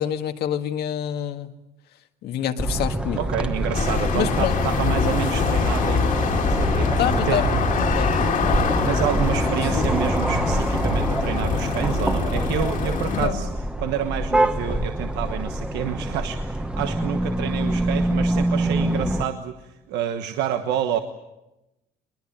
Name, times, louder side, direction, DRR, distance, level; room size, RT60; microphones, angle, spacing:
voice 1, 0.0-1.5 2.2-3.2 4.1-4.6 7.0-8.4 9.7-10.0 13.0-13.4, left 9 dB, 70° left, 6 dB, 1.8 m, -27 dB
sound 1, 2.6-19.2, right 1 dB, 5° right, 1.2 m, -25 dB
voice 2, 3.1-7.4 8.8-13.5 13.8-21.0, right 9 dB, 85° right, 7 dB, 1.3 m, -28 dB
sound 2, 3.7-13.3, left 6 dB, 50° left, 2.4 m, -25 dB
21.5 x 21.0 x 8.8 m, 0.95 s
cardioid pair, 110°, 17 cm